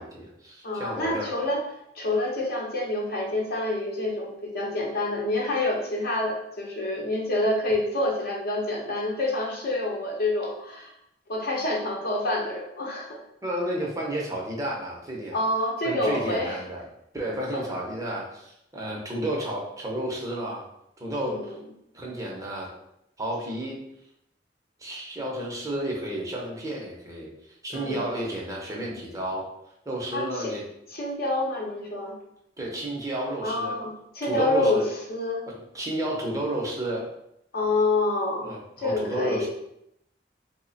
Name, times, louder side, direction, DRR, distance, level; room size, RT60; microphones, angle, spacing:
voice 1, 0.0-1.3 13.4-15.4 15.8-16.8 17.1-20.7 21.0-21.5 21.9-22.7 23.2-23.8 24.8-27.3 27.6-29.5 29.9-30.6 32.6-33.8 34.2-34.8 35.5-37.1 38.4-39.5, right 1 dB, 20° right, -3 dB, 0.7 m, -31 dB
voice 2, 0.6-1.6 1.9-10.9 11.3-13.1 15.3-16.6 17.5-17.6 21.2-21.5 27.7-28.1 30.1-30.5 30.9-32.1 33.4-35.4 37.5-38.5 38.8-39.5, left 2 dB, 55° left, -1 dB, 0.8 m, -27 dB
3.2 x 2.1 x 3.9 m, 0.78 s
head